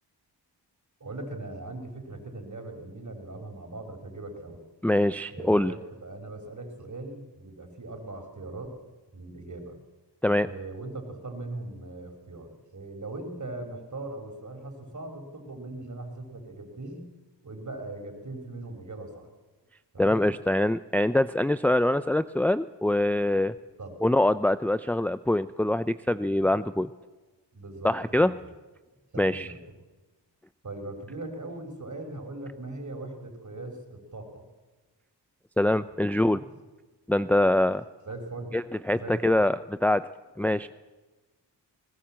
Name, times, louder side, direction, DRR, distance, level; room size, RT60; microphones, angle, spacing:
voice 1, 1.0-4.6 5.3-8.8 9.1-9.8 10.4-17.0 17.4-19.3 19.9-20.3 23.8-24.0 27.5-27.9 28.2-28.4 29.1-29.6 30.6-34.4 36.1-36.4 38.1-38.5 38.9-39.4 40.4-40.7, right 2 dB, 40° right, 4 dB, 5.5 m, -40 dB
voice 2, 4.8-5.7 10.2-10.5 20.0-23.5 24.0-26.9 27.8-28.3 29.2-29.5 35.6-36.4 37.1-37.8 38.5-40.1 40.4-40.7, left 1 dB, 5° left, 13 dB, 0.6 m, -24 dB
21.0 x 19.5 x 7.6 m, 1.2 s
cardioid pair, 45°, 45 cm